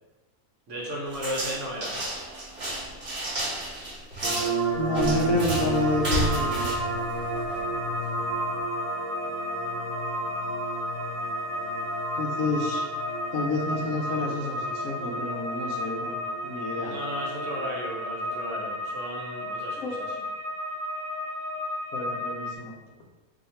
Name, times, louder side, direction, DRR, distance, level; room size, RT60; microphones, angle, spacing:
voice 1, 0.7-1.9 16.7-20.2, right 1 dB, 60° right, -3 dB, 0.9 m, -35 dB
sound 1, 1.1-7.7, right 1 dB, 35° right, 1.0 m, -32 dB
sound 2, 4.2-18.8, right 3 dB, 80° right, 1.2 m, -33 dB
voice 2, 4.8-6.7 12.1-12.9 13.3-16.2 16.4-16.9 19.8-20.0 21.9-22.7, left 2 dB, 70° left, 0 dB, 1.0 m, -29 dB
sound 3, 5.4-22.6, left 1 dB, 40° left, 0.6 m, -33 dB
2.7 x 2.5 x 4.1 m, 1.1 s
omnidirectional pair, 1.6 m